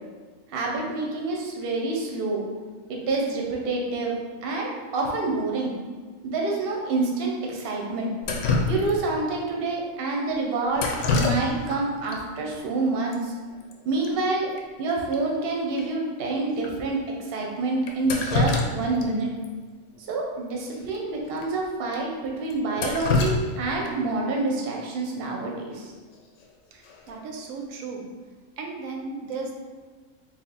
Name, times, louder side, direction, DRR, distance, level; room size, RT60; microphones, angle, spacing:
voice 1, 0.5-2.4 2.9-5.7 6.2-8.1 8.7-10.9 11.1-13.3 13.8-14.5 14.8-19.3 20.0-25.9, right 3 dB, 55° right, -1 dB, 0.8 m, -27 dB
Drip, 8.2-9.2 10.7-11.8 12.1-12.2 13.1-13.2 13.5-13.7 14.0-14.1 14.6-14.7 15.1-15.2 15.8-15.9 16.6-16.7 17.9-19.1 19.4-19.5 20.9-21.0 21.4-21.5 21.9-22.0 22.5-24.1 26.1-26.4 26.8-27.2, left 3 dB, 70° left, 0.9 m, -26 dB
voice 2, 26.7-28.1 28.6-29.5, right 4 dB, 85° right, 1 dB, 1.0 m, -35 dB
3.1 x 3.0 x 4.0 m, 1.5 s
omnidirectional pair, 1.4 m